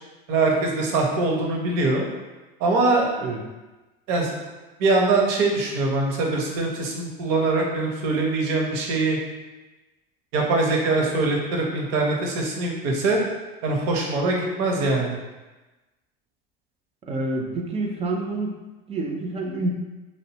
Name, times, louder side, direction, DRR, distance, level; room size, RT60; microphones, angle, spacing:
voice 1, 0.3-2.1 2.6-3.1 4.1-4.4 4.8-9.2 10.3-13.2 13.6-15.2, right 3 dB, 60° right, 0 dB, 0.7 m, -23 dB
voice 2, 17.1-18.5 18.9-19.7, right 2 dB, 20° right, 1 dB, 0.4 m, -27 dB
2.6 x 2.1 x 2.7 m, 1.1 s
supercardioid pair, 95°, 29 cm